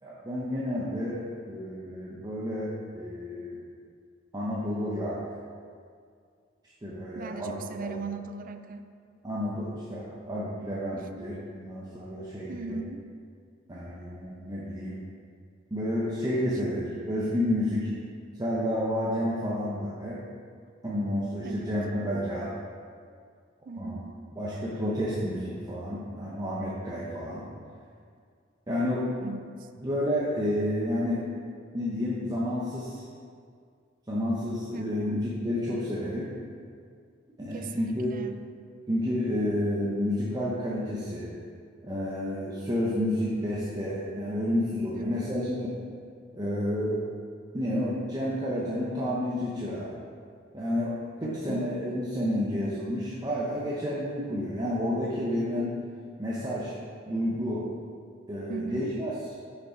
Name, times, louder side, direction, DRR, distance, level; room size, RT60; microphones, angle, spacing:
voice 1, 0.0-3.6 4.3-5.2 6.8-8.0 9.2-12.8 13.7-15.0 15.7-17.9 18.4-20.2 20.8-22.5 23.8-24.0 24.4-27.5 28.7-29.3 29.8-31.3 31.7-33.0 34.1-36.3 37.4-38.1 38.9-41.3 41.8-45.8 46.3-47.0 47.5-49.9 50.5-55.7 56.2-56.8 57.1-57.7 58.3-59.1, left 1 dB, 20° right, -7 dB, 0.8 m, -30 dB
voice 2, 7.1-8.9 12.5-13.0 21.4-21.7 23.7-24.2 29.2-29.7 34.7-35.2 37.5-38.4 44.9-45.4 51.5-51.7 58.5-58.9, right 3 dB, 45° right, 9 dB, 0.4 m, -38 dB
6.8 x 5.6 x 5.0 m, 2.1 s
head